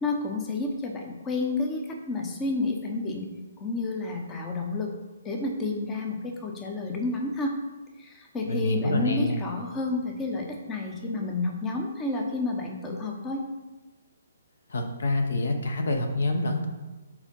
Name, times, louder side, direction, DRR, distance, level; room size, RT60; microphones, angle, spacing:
voice 1, 0.0-3.3 3.6-4.9 5.2-7.5 8.0-13.4, left 3 dB, 15° left, 1 dB, 0.7 m, -30 dB
voice 2, 8.5-9.4 14.7-16.7, left 2 dB, 60° left, 4 dB, 0.9 m, -26 dB
4.8 x 4.4 x 5.2 m, 1.1 s
figure-of-eight pair, 130°, 0 cm